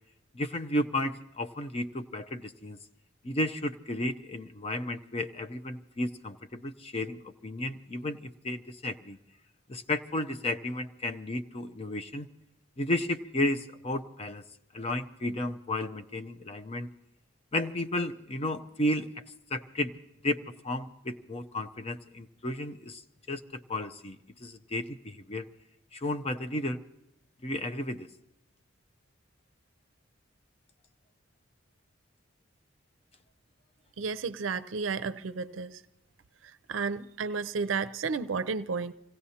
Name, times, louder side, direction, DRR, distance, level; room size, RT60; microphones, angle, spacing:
voice 1, 0.3-2.8 3.2-9.2 9.7-12.3 12.8-14.4 14.7-16.9 17.5-19.2 19.5-19.9 20.2-23.0 23.3-25.5 25.9-26.8 27.4-28.1, left 1 dB, 30° left, 0.5 m, -33 dB
voice 2, 34.0-35.8 36.4-38.9, right 5 dB, 80° right, 0.5 m, -32 dB
26.0 x 17.0 x 2.8 m
head